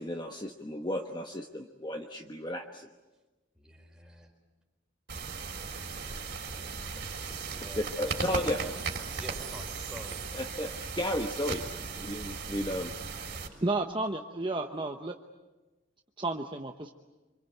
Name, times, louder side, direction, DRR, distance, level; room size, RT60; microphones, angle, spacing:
voice 1, 0.0-2.9 7.8-8.6 10.3-11.6 12.0-12.9, left 1 dB, 25° left, 3 dB, 1.2 m, -34 dB
voice 2, 3.5-4.3 5.7-6.1 7.5-8.7 9.2-10.2, right 1 dB, 5° right, 0 dB, 4.4 m, -47 dB
sound 1, 5.1-13.5, right 4 dB, 55° right, 3.8 m, -37 dB
Wind chime, 8.2-12.6 13.1-13.2, right 13 dB, 85° right, 1.9 m, -50 dB
voice 3, 13.3-15.2 16.2-16.9, right 2 dB, 25° right, 4 dB, 1.0 m, -32 dB
26.5 x 25.5 x 8.0 m, 1.2 s
head